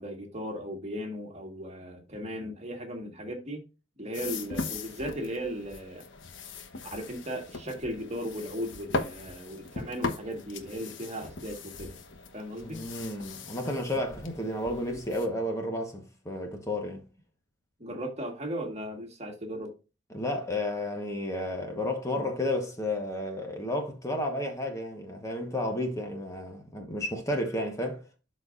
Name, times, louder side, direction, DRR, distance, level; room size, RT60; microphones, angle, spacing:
voice 1, 0.0-3.6 4.0-6.0 6.9-12.0 12.3-12.8 17.8-19.7, equal, 35° right, 1.6 m, -37 dB
sound 1, 4.1-15.3, left 3 dB, 85° left, 1.0 m, -39 dB
voice 2, 12.6-17.0 20.1-28.1, left 1 dB, 15° left, 1.1 m, -32 dB
12.0 x 4.2 x 2.5 m
head